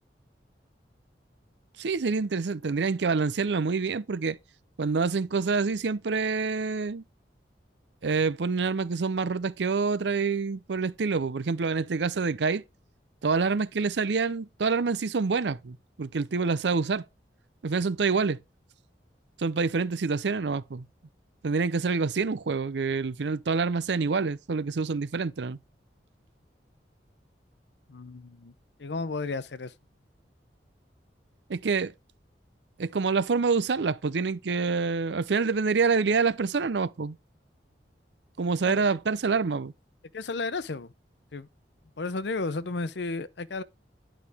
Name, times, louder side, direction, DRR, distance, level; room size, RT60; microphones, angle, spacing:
voice 1, 1.8-4.4 4.8-7.0 8.0-12.6 13.2-17.0 17.6-18.4 19.4-20.9 21.4-25.6 31.5-31.9 32.8-37.2 38.4-39.7, right 4 dB, 75° right, 0.6 m, -27 dB
voice 2, 27.9-28.5 28.8-29.7 38.6-38.8 40.1-40.9 41.3-41.5 42.0-43.6, left 3 dB, 75° left, 0.7 m, -33 dB
10.5 x 4.9 x 3.4 m
head